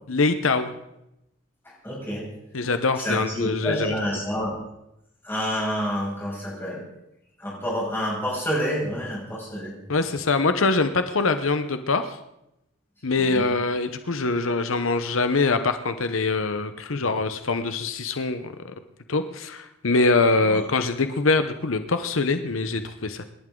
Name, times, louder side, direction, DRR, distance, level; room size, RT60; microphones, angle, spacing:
voice 1, 0.1-0.7 2.5-3.9 9.9-12.2 13.0-18.7 19.1-23.2, left 3 dB, 85° left, 9 dB, 1.0 m, -24 dB
voice 2, 1.6-2.3 3.0-4.6 5.2-6.8 7.4-9.7 13.2-13.5 20.4-20.6, equal, 10° left, -5 dB, 6.9 m, -28 dB
28.0 x 11.0 x 3.9 m, 0.86 s
head